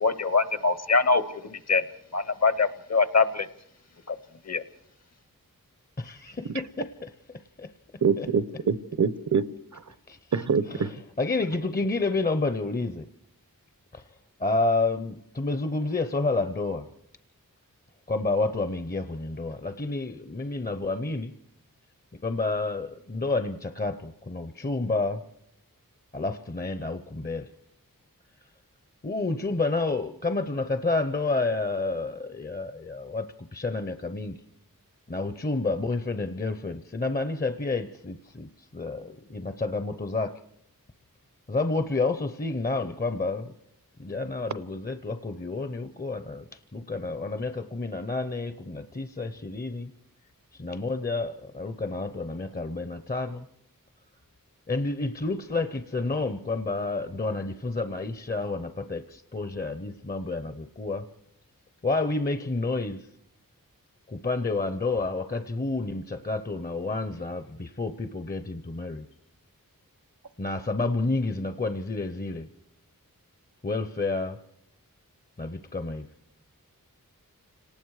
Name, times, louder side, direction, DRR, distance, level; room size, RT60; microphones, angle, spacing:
voice 1, 0.0-1.8 2.1-3.5 4.1-4.2 4.4-4.6, left 4 dB, 50° left, 1.0 m, -24 dB
voice 2, 6.0-7.7 8.2-8.3 10.1-13.1 13.9-14.0 14.4-16.9 18.1-21.3 22.2-25.2 26.1-27.5 29.0-34.4 35.1-40.4 41.5-43.5 44.0-46.4 46.7-49.9 50.5-53.5 54.7-61.1 61.8-63.1 64.1-69.1 70.4-72.5 73.6-74.4 75.4-76.1, left 3 dB, 25° left, 0.7 m, -30 dB
voice 3, 8.0-9.5 10.3-10.9, right 6 dB, 55° right, 0.7 m, -25 dB
29.0 x 19.0 x 4.8 m
wide cardioid pair, 65°, 34 cm